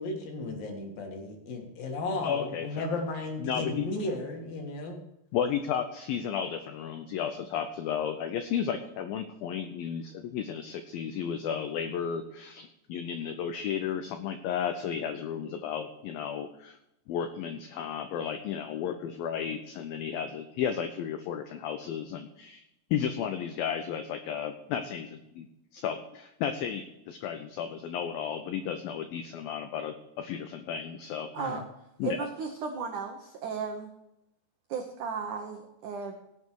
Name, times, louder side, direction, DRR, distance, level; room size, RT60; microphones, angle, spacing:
voice 1, 0.0-5.0 31.4-31.6, left 2 dB, 60° left, 2 dB, 3.2 m, -34 dB
voice 2, 2.2-2.9 3.4-3.9 5.3-16.8 17.1-22.6 22.9-25.5 25.7-31.3 32.0-32.2, left 8 dB, 85° left, 8 dB, 2.1 m, -33 dB
voice 3, 31.3-31.7 32.0-33.9 34.7-36.2, right 5 dB, 80° right, 4 dB, 1.8 m, -35 dB
17.5 x 7.4 x 4.6 m, 0.87 s
omnidirectional pair, 5.1 m